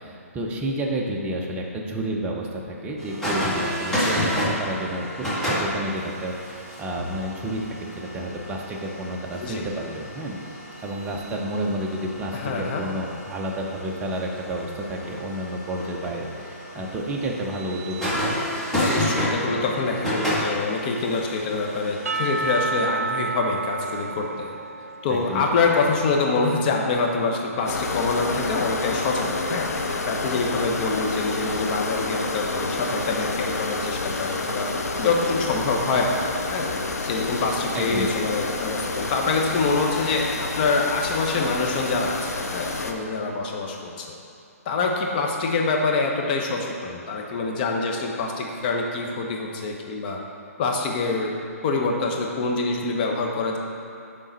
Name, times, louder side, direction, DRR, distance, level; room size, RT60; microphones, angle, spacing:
voice 1, 0.0-5.1 5.5-10.4 10.8-18.2 25.1-25.4 37.7-38.2, right 1 dB, 15° right, -1 dB, 0.7 m, -30 dB
sound 1, 3.0-22.7, equal, 5° left, 1.6 m, -31 dB
voice 2, 12.3-12.8 18.7-24.5 25.0-29.7 30.1-34.7 35.0-36.7 37.0-44.1 44.6-50.2 50.6-51.3 51.6-53.6, left 3 dB, 35° left, 0 dB, 0.9 m, -25 dB
Percussion / Church bell, 22.1-26.2, right 3 dB, 70° right, 0.6 m, -30 dB
sound 2, 27.7-42.9, left 3 dB, 85° left, 0.7 m, -29 dB
11.0 x 3.8 x 4.1 m, 2.7 s
hypercardioid pair, 145°, 8 cm